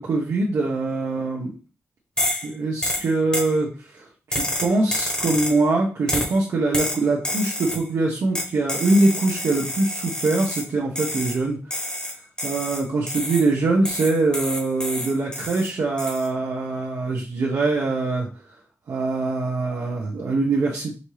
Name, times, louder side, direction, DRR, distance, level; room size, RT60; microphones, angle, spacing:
voice 1, 0.0-1.5 2.4-11.8 12.4-18.3 18.9-20.9, right 3 dB, 70° right, -3 dB, 0.9 m, -23 dB
sound 1, 2.2-2.5 2.8-3.5 4.3-5.6 6.1-6.4 6.7-7.9 8.3-10.7 11.0-11.4 11.7-13.5 13.8-15.7 16.0-16.3, left 1 dB, 15° left, 1.1 m, -28 dB
5.2 x 2.8 x 3.2 m, 0.34 s
wide cardioid pair, 130°, 5 cm